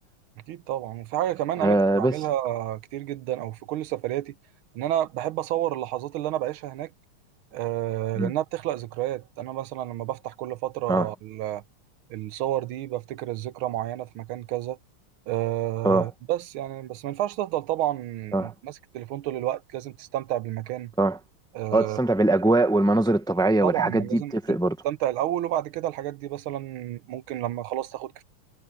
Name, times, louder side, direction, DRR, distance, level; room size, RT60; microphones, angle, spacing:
voice 1, 0.5-4.3 4.7-6.9 7.5-11.6 12.1-14.8 15.3-20.9 21.5-22.0 23.6-24.6 24.8-28.2, right 13 dB, 80° right, 1.5 m, -30 dB
voice 2, 1.6-2.2 8.2-8.3 10.9-11.1 15.8-16.1 18.3-18.5 21.0-21.2 21.7-24.8, right 2 dB, 5° left, 0.9 m, -22 dB
omnidirectional pair, 2.3 m